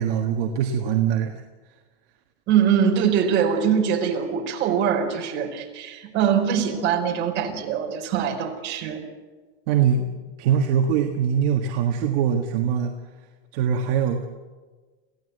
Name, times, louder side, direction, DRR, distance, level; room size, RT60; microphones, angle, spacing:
voice 1, 0.0-1.4 9.7-10.1 10.4-12.9 13.5-14.3, right 8 dB, 50° right, 3 dB, 1.8 m, -22 dB
voice 2, 2.5-9.0, right 8 dB, 35° right, 1 dB, 4.5 m, -23 dB
28.0 x 16.5 x 8.1 m, 1.4 s
supercardioid pair, 165°, 33 cm